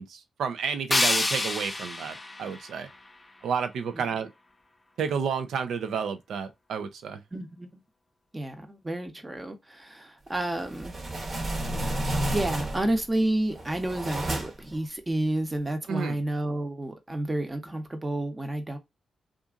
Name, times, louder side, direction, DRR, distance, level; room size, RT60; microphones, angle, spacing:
voice 1, 0.0-2.9 3.4-4.3 5.0-7.2 15.9-16.2, right 6 dB, 75° right, 0.4 m, -31 dB
sound 1, 0.9-3.9, left 2 dB, 25° left, 0.6 m, -29 dB
voice 2, 7.3-7.7 8.3-10.9 12.3-18.8, right 1 dB, 25° right, 0.9 m, -30 dB
sound 2, 10.5-13.0 13.5-14.7, right 1 dB, 45° right, 1.0 m, -31 dB
2.7 x 2.5 x 2.4 m
hypercardioid pair, 40°, 0 cm